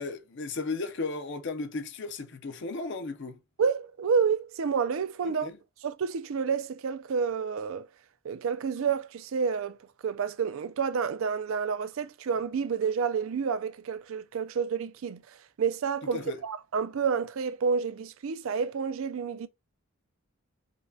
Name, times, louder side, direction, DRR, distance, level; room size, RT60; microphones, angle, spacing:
voice 1, 0.0-3.4 5.2-5.6 16.1-16.4, left 3 dB, 55° left, 0.5 m, -35 dB
voice 2, 3.6-5.5 5.8-7.9 8.2-9.8 10.0-19.5, right 6 dB, 65° right, 0.4 m, -29 dB
5.1 x 2.2 x 2.6 m
head